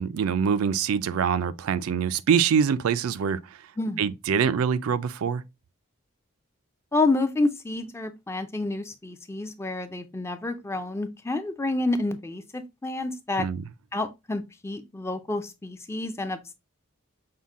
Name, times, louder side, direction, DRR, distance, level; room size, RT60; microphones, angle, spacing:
voice 1, 0.0-3.4 4.0-5.4 13.4-13.6, right 7 dB, 85° right, 0.4 m, -24 dB
voice 2, 6.9-13.5 13.9-16.5, left 2 dB, 10° left, 0.3 m, -29 dB
5.6 x 2.2 x 3.5 m
head